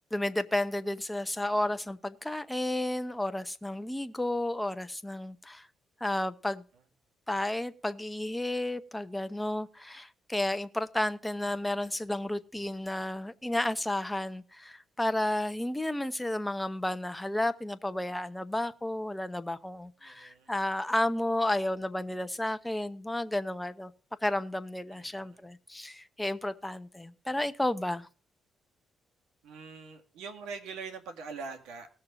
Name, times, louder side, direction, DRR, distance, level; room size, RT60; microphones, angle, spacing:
voice 1, 0.1-5.7 6.0-6.6 7.3-23.9 24.2-28.1, left 1 dB, 10° left, 0.9 m, -32 dB
voice 2, 20.0-20.5 24.9-25.5 29.4-31.9, right 5 dB, 90° right, 2.0 m, -43 dB
19.0 x 6.7 x 3.8 m
cardioid pair, 90°, 0 cm